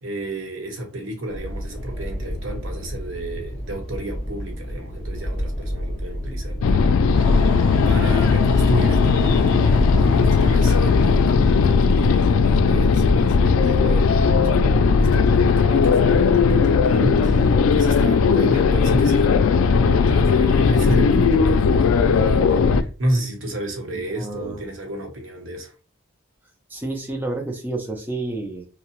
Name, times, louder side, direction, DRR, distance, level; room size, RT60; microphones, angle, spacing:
voice 1, 0.0-7.5 7.9-19.6 19.8-25.7, right 1 dB, 70° right, 0.9 m, -31 dB
sound 1, 1.3-10.3, equal, 35° left, 1.1 m, -31 dB
sound 2, 6.6-22.8, left 5 dB, 80° left, 0.3 m, -17 dB
sound 3, 7.1-12.5, left 2 dB, 15° left, 1.3 m, -37 dB
voice 2, 24.2-24.6 26.7-28.7, right 2 dB, 10° right, 0.4 m, -29 dB
2.8 x 2.0 x 2.9 m
head